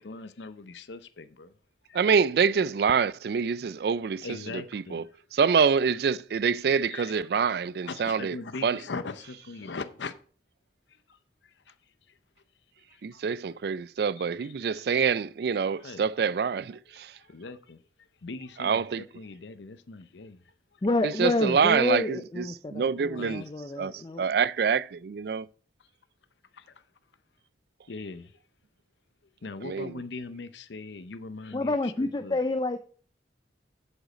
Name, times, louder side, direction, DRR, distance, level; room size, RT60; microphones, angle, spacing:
voice 1, 0.0-1.5 1.9-2.0 4.2-5.2 6.9-7.2 7.8-10.2 10.9-11.7 12.1-12.2 12.9-13.0 14.2-14.8 15.8-16.1 16.9-17.8 18.2-20.8 23.0-23.5 26.5-26.8 27.9-28.4 29.4-32.4, left 3 dB, 85° left, 0.7 m, -41 dB
voice 2, 1.9-4.3 4.5-5.0 5.3-8.4 8.6-8.8 13.0-17.1 18.6-19.0 21.0-22.4 22.7-23.4 23.8-25.5 29.6-29.9, right 6 dB, 60° right, 0.3 m, -26 dB
voice 3, 20.8-24.2 31.5-32.8, left 2 dB, 25° left, 0.4 m, -28 dB
8.1 x 6.4 x 5.0 m
head